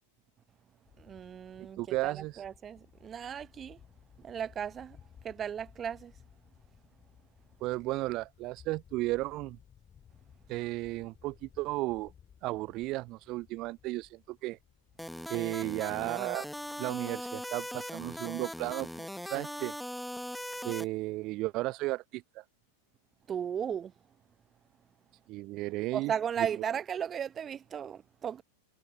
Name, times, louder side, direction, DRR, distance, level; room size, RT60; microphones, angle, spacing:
sound 1, 0.9-17.2, left 8 dB, 25° left, 5.5 m, -60 dB
voice 1, 1.0-3.8 4.2-5.0 5.2-6.1 23.3-23.9 25.9-28.4, right 8 dB, 25° right, 1.0 m, -36 dB
voice 2, 1.8-2.4 7.6-9.6 10.5-12.1 12.4-14.6 15.3-16.5 16.8-19.7 20.6-22.4 25.3-26.1 26.4-26.5, right 19 dB, 40° right, 0.4 m, -34 dB
sound 2, 15.0-20.8, equal, ahead, 1.6 m, -40 dB
figure-of-eight pair, 90°, 0 cm